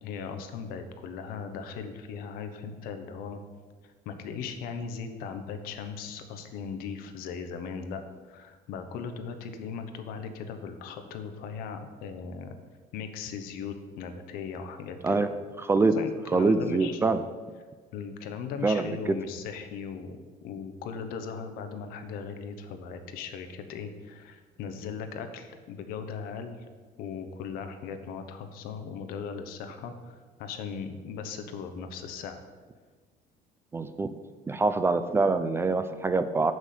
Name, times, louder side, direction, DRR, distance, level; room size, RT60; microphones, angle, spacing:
voice 1, 0.0-3.4 3.8-12.5 12.9-15.3 15.9-17.2 17.9-26.6 27.0-32.4, left 6 dB, 75° left, 7 dB, 1.1 m, -38 dB
voice 2, 16.3-17.2 18.6-18.9 33.7-34.1 34.5-36.5, right 3 dB, 15° right, 10 dB, 0.4 m, -24 dB
7.5 x 6.2 x 6.7 m, 1.4 s
cardioid pair, 150°, 15 cm